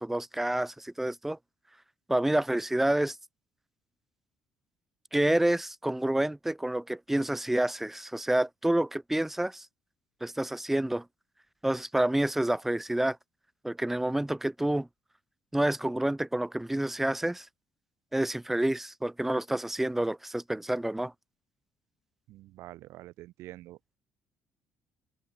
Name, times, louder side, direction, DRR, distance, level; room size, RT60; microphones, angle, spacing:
voice 1, 0.0-1.4 2.1-3.2 5.1-9.7 10.2-11.0 11.6-13.2 13.6-14.9 15.5-17.5 18.1-21.1, right 1 dB, 5° right, 1.2 m, -28 dB
voice 2, 22.3-23.8, right 16 dB, 80° right, 1.2 m, -46 dB
open air
cardioid pair, 125°, 5 cm